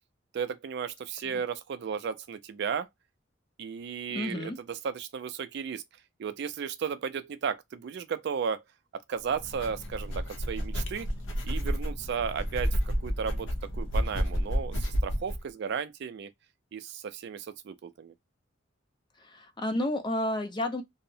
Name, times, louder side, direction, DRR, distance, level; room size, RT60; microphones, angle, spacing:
voice 1, 0.3-2.9 3.6-5.8 6.2-8.6 9.1-11.1 11.4-13.5 13.8-16.3 16.7-18.1, right 6 dB, 60° right, 0.3 m, -34 dB
voice 2, 4.1-4.6 19.2-20.8, left 1 dB, 25° left, 0.4 m, -31 dB
sound 1, 9.3-15.4, equal, 70° left, 0.6 m, -31 dB
2.6 x 2.0 x 2.6 m
head